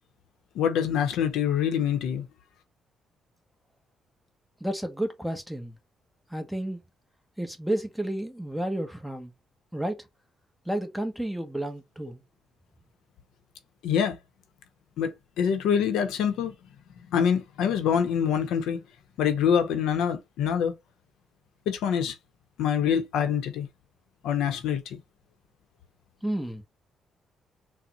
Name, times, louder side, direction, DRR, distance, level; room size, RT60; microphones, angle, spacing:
voice 1, 0.6-2.2 13.8-14.2 15.0-15.1 15.4-16.5 17.1-18.8 19.2-20.7 21.7-22.1 22.6-23.7 24.2-25.0, left 8 dB, 85° left, 0.7 m, -25 dB
voice 2, 4.6-5.7 6.3-6.8 7.4-9.3 9.7-10.0 10.7-12.2 26.2-26.6, right 1 dB, ahead, 0.8 m, -31 dB
3.9 x 2.1 x 2.8 m
cardioid pair, 90°, 0 cm